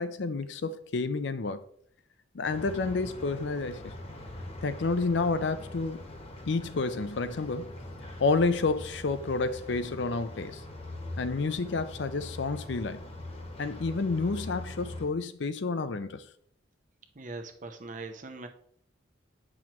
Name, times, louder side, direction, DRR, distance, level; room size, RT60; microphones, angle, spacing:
voice 1, 0.0-1.6 2.3-3.9 4.6-6.0 6.5-7.7 8.2-10.6 11.2-13.0 13.6-16.2, left 3 dB, 65° left, 0.5 m, -30 dB
sound 1, 2.5-15.1, left 1 dB, 30° left, 1.2 m, -42 dB
voice 2, 17.1-18.5, right 3 dB, 40° right, 0.8 m, -41 dB
8.9 x 6.2 x 3.0 m
head